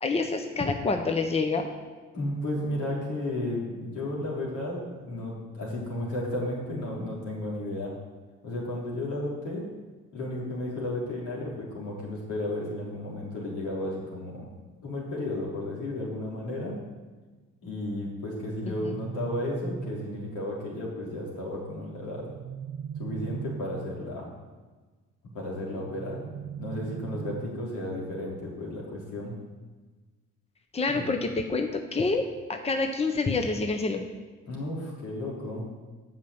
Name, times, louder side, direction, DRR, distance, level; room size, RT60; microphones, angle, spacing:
voice 1, 0.0-1.7 18.8-19.0 30.7-34.0, left 3 dB, 20° left, 5 dB, 0.9 m, -27 dB
voice 2, 2.1-7.9 8.4-9.7 10.1-14.5 14.8-16.8 17.6-22.2 23.0-24.3 25.3-26.2 26.6-29.4 30.9-31.0 34.5-35.6, left 1 dB, 80° left, -4 dB, 3.5 m, -33 dB
sound 1, 18.4-20.4 22.1-24.1 25.8-27.8, right 6 dB, 40° right, 0.5 m, -38 dB
8.3 x 5.8 x 7.9 m, 1.3 s
cardioid pair, 90°, 30 cm